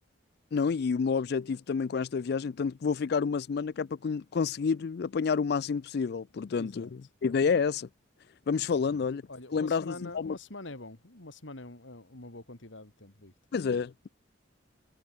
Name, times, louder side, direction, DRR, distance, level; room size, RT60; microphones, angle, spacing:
voice 1, 0.5-6.9 7.2-7.9 8.5-9.2 9.5-10.4 13.5-14.1, left 5 dB, 60° left, 0.4 m, -29 dB
voice 2, 6.6-6.9 8.7-13.3, left 2 dB, 90° left, 3.2 m, -45 dB
head